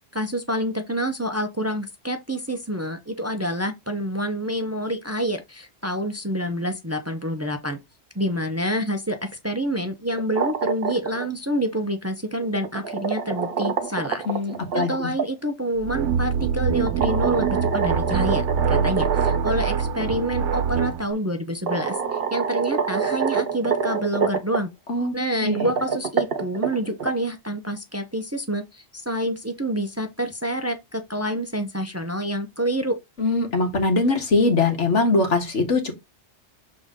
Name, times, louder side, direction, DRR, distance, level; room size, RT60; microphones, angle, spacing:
voice 1, 0.1-7.8 8.1-14.2 14.7-24.7 25.1-32.9, equal, 15° right, 0.7 m, -27 dB
sound 1, 10.1-11.3 12.4-15.3 16.9-19.7 20.0-20.1 21.1-21.2 21.7-24.6 25.4-27.1, right 6 dB, 60° right, 1.1 m, -26 dB
voice 2, 14.3-15.1 24.9-25.1 25.4-25.7 33.2-35.9, left 3 dB, 90° left, 1.9 m, -22 dB
sound 2, 15.8-21.0, right 6 dB, 85° right, 1.1 m, -24 dB
6.9 x 3.9 x 3.7 m
omnidirectional pair, 1.2 m